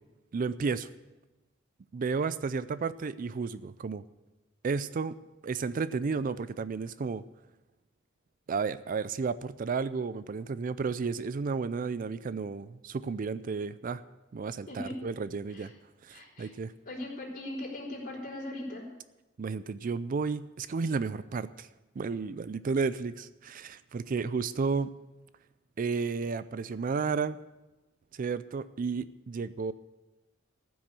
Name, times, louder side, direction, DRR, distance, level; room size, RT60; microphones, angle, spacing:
voice 1, 0.3-0.9 1.9-4.0 4.6-5.2 5.4-7.2 8.5-14.0 14.3-15.7 16.0-16.7 19.4-21.7 22.0-24.9 25.8-27.4 28.1-29.7, right 5 dB, 45° right, 15 dB, 0.4 m, -32 dB
voice 2, 14.7-15.0 15.5-15.7 16.1-16.5 16.9-18.9, left 1 dB, 45° left, -3 dB, 4.1 m, -39 dB
14.5 x 6.3 x 8.2 m, 1.1 s
head